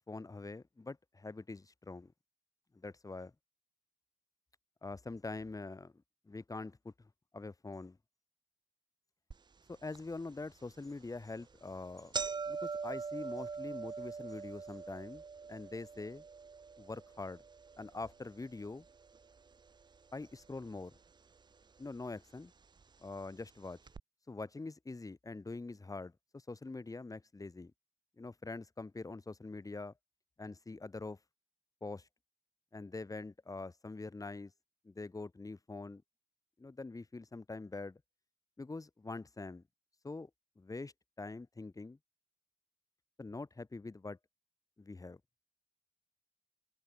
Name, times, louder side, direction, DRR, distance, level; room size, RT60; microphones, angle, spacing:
voice 1, 0.1-2.1 2.7-3.3 4.8-8.0 9.7-12.2 12.5-15.2 15.5-16.2 16.8-17.4 17.8-18.8 20.1-20.9 21.8-22.5 23.0-23.8 24.3-27.7 28.2-29.9 30.4-31.2 31.8-32.1 32.7-34.5 34.8-36.0 36.6-38.0 38.6-39.6 40.0-40.3 40.6-42.0 43.2-44.2 44.8-45.2, left 3 dB, 15° left, 1.4 m, -44 dB
sound 1, 9.3-9.4 9.9-10.0 10.9-11.1 11.4-11.5 11.8-20.0 20.2-21.0 21.8-21.9 22.8-22.9 23.2-23.3 23.9-24.0, right 5 dB, 20° right, 0.5 m, -43 dB
open air
cardioid pair, 90°, 20 cm